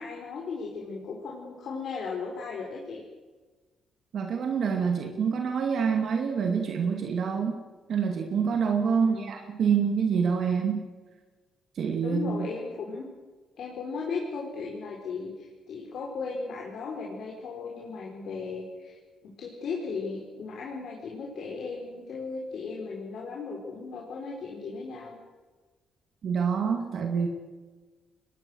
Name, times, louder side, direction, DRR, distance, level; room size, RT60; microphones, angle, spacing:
voice 1, 0.0-3.0 8.9-9.3 12.0-13.1 13.6-19.0 19.2-25.1, left 4 dB, 70° left, -2 dB, 4.5 m, -36 dB
voice 2, 4.1-7.6 7.9-10.9 11.7-12.5 26.2-27.3, right 6 dB, 65° right, 3 dB, 2.4 m, -26 dB
25.5 x 21.0 x 6.4 m, 1.3 s
cardioid pair, 95°, 0 cm